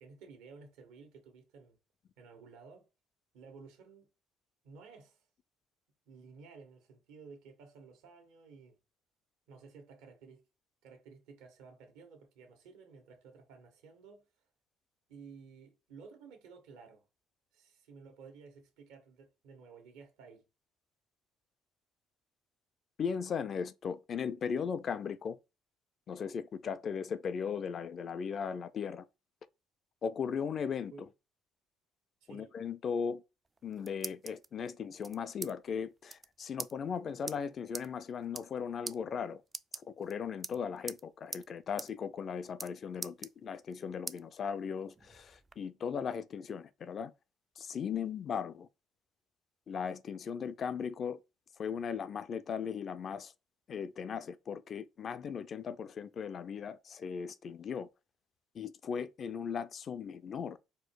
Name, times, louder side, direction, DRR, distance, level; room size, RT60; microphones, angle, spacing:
voice 1, 0.0-1.8 2.2-2.9 3.3-4.1 4.6-5.2 6.1-8.8 9.5-10.4 10.8-14.3 15.1-17.0 17.5-20.5 30.9-31.1 32.2-32.5, right 5 dB, 85° right, 1.4 m, -54 dB
voice 2, 23.0-25.4 26.1-29.1 30.0-31.1 32.3-33.2 33.6-39.4 39.8-47.1 47.6-48.7 49.7-51.2 51.6-53.3 53.7-57.9 58.5-60.6, left 6 dB, 50° left, 0.4 m, -37 dB
sound 1, 33.4-34.5 35.0-35.5 35.8-35.9 36.1-36.3 36.6-36.7 37.3-37.4 37.7-37.9 38.2-38.6 38.9-39.0 39.5-40.1 40.4-41.0 41.3-41.5 41.8-41.9 42.2-42.7 43.0-43.7 44.1-44.2 44.7-45.6, right 4 dB, 25° right, 0.3 m, -42 dB
4.3 x 2.3 x 4.6 m
supercardioid pair, 90°, 0 cm